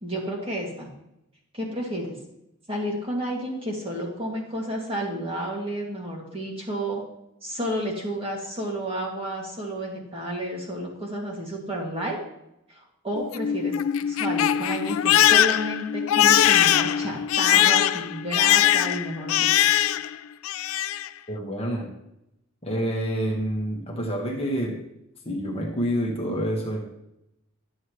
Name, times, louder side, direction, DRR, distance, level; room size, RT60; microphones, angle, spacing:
voice 1, 0.0-0.9 1.5-2.2 2.7-7.0 7.4-12.2 12.7-13.8 14.0-19.7, equal, 25° right, -2 dB, 2.0 m, -31 dB
Crying sobbing, 13.2-20.2 20.4-21.1, left 11 dB, 65° left, 0.3 m, -21 dB
voice 2, 21.3-21.9 22.6-24.8 25.2-26.8, equal, 25° left, -1 dB, 1.3 m, -27 dB
11.5 x 7.8 x 3.1 m, 0.84 s
head